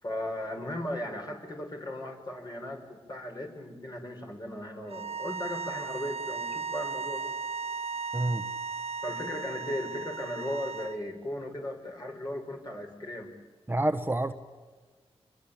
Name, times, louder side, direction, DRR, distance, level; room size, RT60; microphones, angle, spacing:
voice 1, 0.0-7.3 9.0-13.3, left 1 dB, 40° left, 2 dB, 5.6 m, -37 dB
sound 1, 4.9-11.0, right 5 dB, 70° right, 1.1 m, -36 dB
voice 2, 8.1-8.5 13.7-14.3, right 1 dB, 20° right, 9 dB, 1.2 m, -28 dB
27.0 x 22.0 x 8.7 m, 1.3 s
cardioid pair, 70°, 11 cm